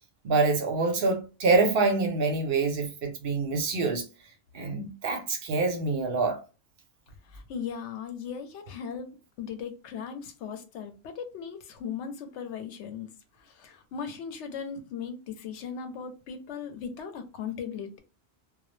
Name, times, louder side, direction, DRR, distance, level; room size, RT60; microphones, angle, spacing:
voice 1, 0.2-4.0 4.5-6.4, right 3 dB, 60° right, 0.7 m, -26 dB
voice 2, 7.3-9.1 9.4-13.1 13.4-18.0, left 7 dB, 85° left, 0.9 m, -38 dB
2.2 x 2.0 x 3.0 m
omnidirectional pair, 1.1 m